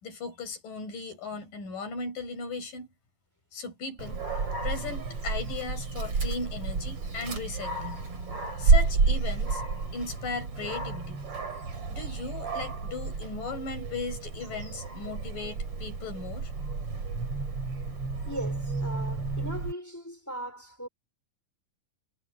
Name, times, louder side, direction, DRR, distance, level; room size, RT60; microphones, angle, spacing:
voice 1, 0.0-2.9 3.5-4.2 4.6-8.1 8.6-9.6 9.9-11.2 11.9-16.5, left 4 dB, 70° left, 8.1 m, -37 dB
Dog, 4.0-19.7, right 4 dB, 40° right, 4.6 m, -30 dB
voice 2, 18.3-20.9, equal, 5° left, 3.9 m, -38 dB
omnidirectional pair, 4.0 m